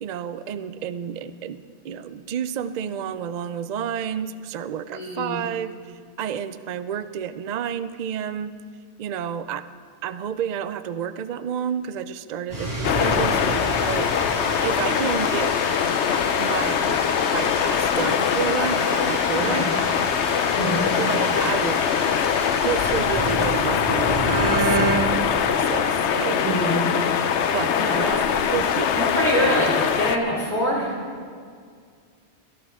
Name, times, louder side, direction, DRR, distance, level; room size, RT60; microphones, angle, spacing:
voice 1, 0.0-8.6 9.0-9.7 10.0-14.3 14.6-15.5 16.4-19.7 21.0-21.8 22.6-26.7 27.5-28.1 28.5-29.0, right 9 dB, 55° right, 12 dB, 0.5 m, -30 dB
voice 2, 4.9-5.4 13.0-13.3 19.4-19.7 20.5-20.8 26.3-26.9 27.7-28.5 28.9-31.0, equal, 40° left, -5 dB, 3.9 m, -25 dB
sound 1, 12.5-25.0, right 1 dB, 40° right, 3.7 m, -30 dB
sound 2, 12.8-30.2, left 8 dB, 85° left, 1.0 m, -22 dB
21.0 x 11.5 x 3.6 m, 2.1 s
omnidirectional pair, 1.1 m